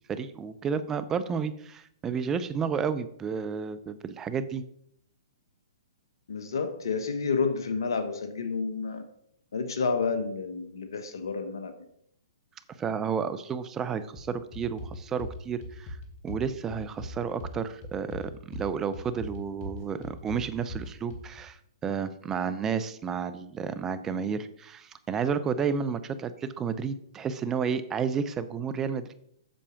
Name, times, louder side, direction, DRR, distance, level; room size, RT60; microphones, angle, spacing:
voice 1, 0.1-4.6 12.8-16.0 16.2-29.1, right 6 dB, 20° right, 12 dB, 0.6 m, -31 dB
voice 2, 6.3-9.0 9.5-11.7, left 5 dB, 70° left, 8 dB, 1.2 m, -30 dB
sound 1, 14.2-21.4, left 1 dB, 40° left, 1.7 m, -39 dB
7.7 x 6.9 x 5.0 m, 0.71 s
figure-of-eight pair, 125°, 2 cm